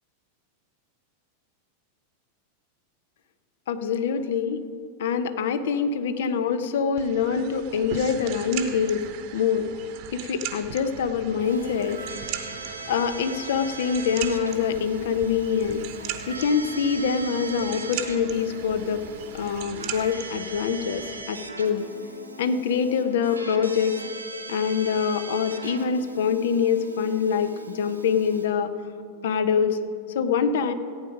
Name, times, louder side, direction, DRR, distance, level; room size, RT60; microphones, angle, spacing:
voice 1, 3.7-4.6 5.0-9.0 9.3-9.7 10.1-12.0 12.9-15.8 16.3-19.0 19.3-21.8 22.4-24.0 24.5-28.7 29.2-29.8 30.1-30.7, left 6 dB, 55° left, 11 dB, 0.6 m, -25 dB
sound 1, 7.0-21.2, right 10 dB, 45° right, 0.8 m, -39 dB
Keyboard (musical), 11.4-28.5, right 3 dB, 80° right, 1.0 m, -39 dB
15.0 x 8.8 x 5.0 m, 2.4 s
figure-of-eight pair, 90°, 0 cm